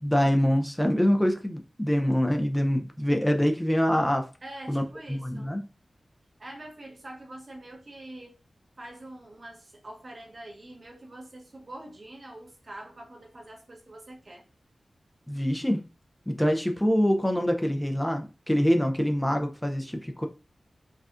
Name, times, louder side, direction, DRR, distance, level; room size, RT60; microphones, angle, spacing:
voice 1, 0.0-4.3 4.7-4.8 5.1-5.6 15.3-15.8 16.3-20.3, equal, 10° left, 0.4 m, -25 dB
voice 2, 4.4-5.5 6.4-8.3 8.8-14.4, right 1 dB, 45° right, 1.0 m, -44 dB
4.7 x 2.4 x 2.4 m
wide cardioid pair, 70°, 0 cm